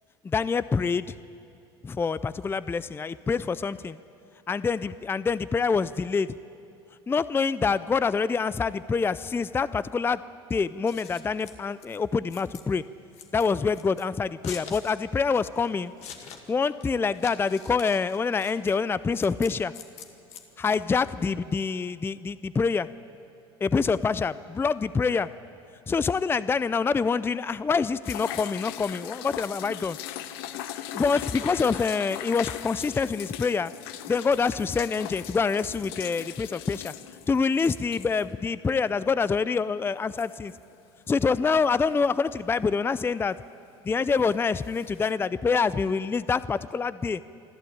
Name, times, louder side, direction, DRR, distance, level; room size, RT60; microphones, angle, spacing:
voice 1, 0.2-1.2 1.8-4.0 4.5-6.4 7.1-10.2 10.5-12.8 13.3-15.9 16.5-19.7 20.6-22.9 23.6-25.3 25.9-30.0 30.9-33.7 34.1-36.9 37.3-40.5 41.1-43.4 43.8-47.2, left 5 dB, 15° left, 16 dB, 0.4 m, -26 dB
Scissors, 10.7-21.3, left 7 dB, 55° left, 1.9 m, -46 dB
sound 1, 28.0-38.3 38.6-38.7 39.9-40.7 44.2-44.3 44.6-45.1, left 12 dB, 75° left, 0.9 m, -39 dB
26.5 x 12.0 x 8.6 m, 2.6 s
hypercardioid pair, 80°, 13 cm